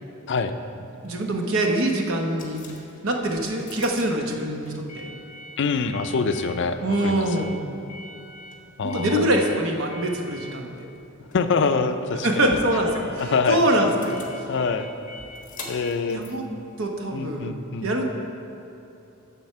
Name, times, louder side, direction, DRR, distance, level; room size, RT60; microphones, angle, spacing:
sound 1, 1.0-17.4, left 1 dB, 40° left, 1.3 m, -44 dB
voice 1, 1.0-2.6 3.0-5.1 6.8-7.6 8.8-10.7 12.2-14.2 16.1-16.4 16.8-17.5 17.8-18.0, right 1 dB, 75° right, 2 dB, 1.0 m, -24 dB
voice 2, 5.6-7.3 8.8-9.3 11.3-12.6 13.2-13.6 14.5-14.9 15.7-16.2 17.1-17.9, left 4 dB, 60° left, 9 dB, 0.5 m, -25 dB
7.5 x 7.2 x 5.7 m, 2.9 s
head